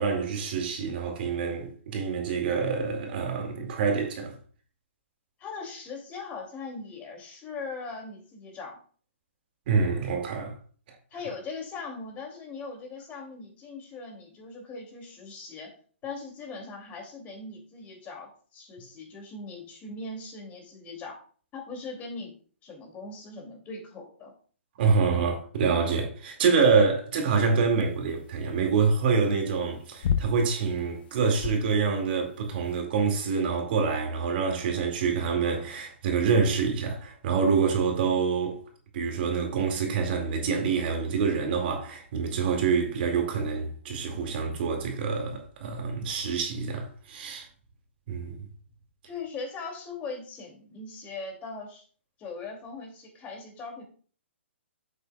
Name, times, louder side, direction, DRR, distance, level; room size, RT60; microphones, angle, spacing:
voice 1, 0.0-4.3 9.7-10.5 24.8-38.6 38.9-47.5 48.1-48.5, right 5 dB, 50° right, 2.1 m, -26 dB
voice 2, 5.4-8.8 11.1-15.7 16.0-21.2 21.5-22.3 22.6-24.3 49.0-51.8 52.2-53.8, left 4 dB, 25° left, 2.4 m, -40 dB
sound 1, 27.3-32.8, left 8 dB, 55° left, 0.6 m, -34 dB
8.8 x 8.3 x 2.3 m
hypercardioid pair, 135°, 7 cm